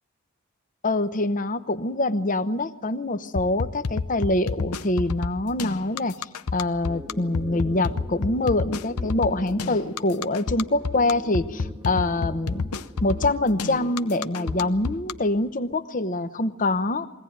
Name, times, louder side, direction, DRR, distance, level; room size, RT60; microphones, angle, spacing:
voice 1, 0.8-6.1 6.5-12.7 13.0-17.1, left 2 dB, 35° left, 10 dB, 0.9 m, -25 dB
sound 1, 3.3-15.1, left 4 dB, 90° left, 0.8 m, -29 dB
sound 2, 6.9-15.9, right 1 dB, 15° right, 1.0 m, -42 dB
23.0 x 17.0 x 9.4 m, 1.3 s
head